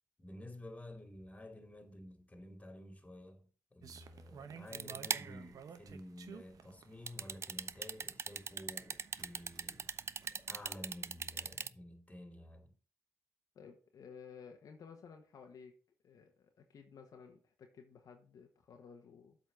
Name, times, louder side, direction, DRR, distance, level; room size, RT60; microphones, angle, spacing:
voice 1, 0.2-9.9 10.3-12.7, left 1 dB, 20° left, 2.5 m, -52 dB
sound 1, 3.8-10.9, right 7 dB, 70° right, 0.9 m, -54 dB
sound 2, 4.7-5.4 7.1-11.7, right 5 dB, 45° right, 0.4 m, -39 dB
voice 2, 13.5-15.7 16.0-19.4, left 6 dB, 70° left, 1.3 m, -55 dB
8.0 x 4.2 x 6.8 m
supercardioid pair, 55°, 6 cm